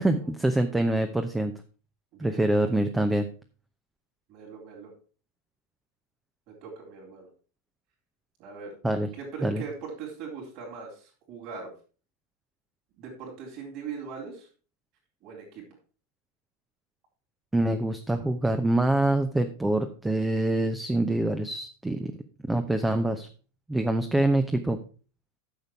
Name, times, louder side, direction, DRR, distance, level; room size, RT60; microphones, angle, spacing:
voice 1, 0.0-1.5 2.2-3.3 8.8-9.1 9.4-9.6 17.5-22.1 22.5-23.3 23.7-24.8, right 1 dB, 5° right, 8 dB, 0.8 m, -25 dB
voice 2, 2.1-2.8 4.3-4.9 6.5-7.3 8.4-8.8 9.1-11.7 13.0-14.5 15.2-15.6, right 5 dB, 40° right, -2 dB, 3.9 m, -40 dB
10.5 x 6.7 x 4.6 m, 0.38 s
figure-of-eight pair, 90°, 0 cm